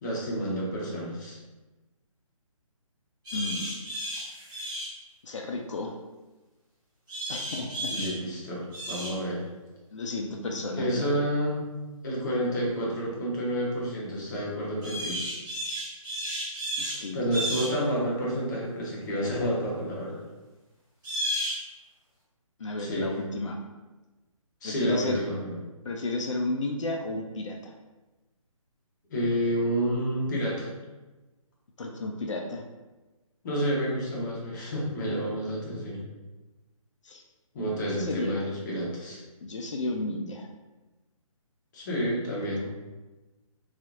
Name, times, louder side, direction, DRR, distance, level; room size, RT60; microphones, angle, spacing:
voice 1, 0.0-1.4 7.9-9.4 10.8-11.6 12.0-15.2 17.1-20.2 22.8-23.1 24.6-25.5 29.1-30.7 33.4-36.0 37.5-39.2 41.7-42.7, equal, 30° left, -4 dB, 0.7 m, -29 dB
sound 1, 3.2-5.0 7.1-8.2 8.7-9.2 14.8-17.0 17.3-17.7 21.0-21.6, equal, 35° right, 1.5 m, -33 dB
voice 2, 3.3-3.8 5.2-5.9 7.3-7.9 9.9-11.2 16.8-17.2 22.6-23.6 24.6-25.2 25.8-27.7 31.8-32.6 37.0-37.2 37.7-38.4 39.4-40.5, left 2 dB, 60° left, 1 dB, 0.4 m, -33 dB
2.7 x 2.4 x 2.4 m, 1.1 s
figure-of-eight pair, 145°, 18 cm